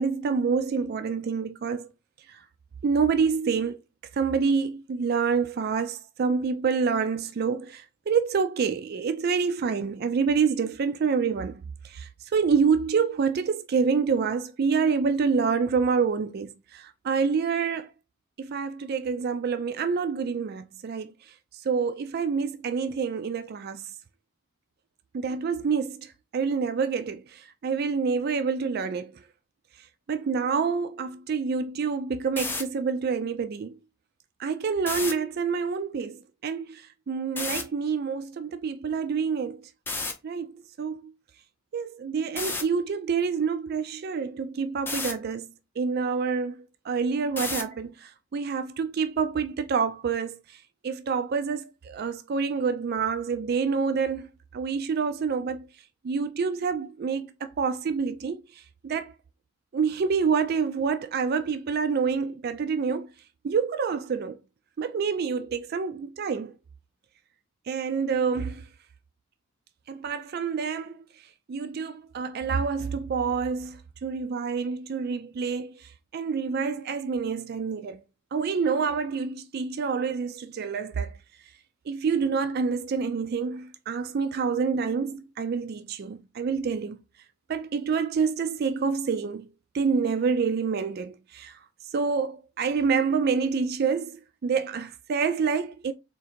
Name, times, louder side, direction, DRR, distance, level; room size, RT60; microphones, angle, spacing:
voice 1, 0.0-1.9 2.3-2.4 2.8-3.8 4.1-17.9 18.4-21.1 21.7-23.8 25.1-29.1 30.1-33.8 34.4-39.6 40.2-40.5 40.8-41.1 41.7-45.5 45.8-46.6 46.9-50.4 50.8-54.3 54.5-55.6 56.0-58.4 58.8-59.1 59.7-63.1 63.4-64.4 64.8-66.5 67.7-68.6 69.9-71.0 71.5-78.0 78.3-81.2 81.9-87.0 87.5-89.5 89.7-91.6 91.9-95.9, right 5 dB, 50° right, 0.3 m, -27 dB
sound 1, 32.2-32.6 34.8-35.1 37.3-37.6 39.9-40.1 42.4-42.6 44.9-45.1 47.4-47.7, left 3 dB, 10° left, 0.6 m, -30 dB
3.7 x 2.6 x 4.2 m
head